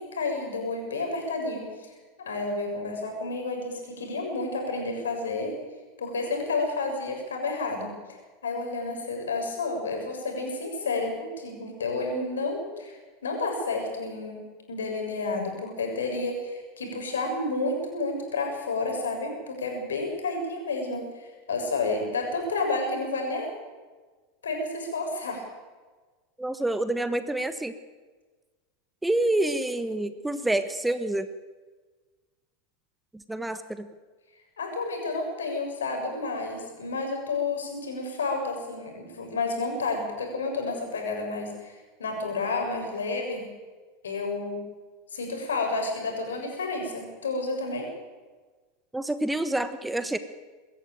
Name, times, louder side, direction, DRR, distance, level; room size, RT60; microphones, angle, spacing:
voice 1, 0.0-1.9 2.2-5.6 6.0-8.2 8.4-14.4 14.7-23.5 24.4-25.4 34.6-43.5 44.0-44.6 45.1-47.9, left 3 dB, 75° left, 2 dB, 6.9 m, -30 dB
voice 2, 26.4-27.7 29.0-31.3 33.1-33.9 48.9-50.2, right 1 dB, 5° right, 11 dB, 1.3 m, -27 dB
24.0 x 14.5 x 9.1 m, 1.3 s
figure-of-eight pair, 85°, 0 cm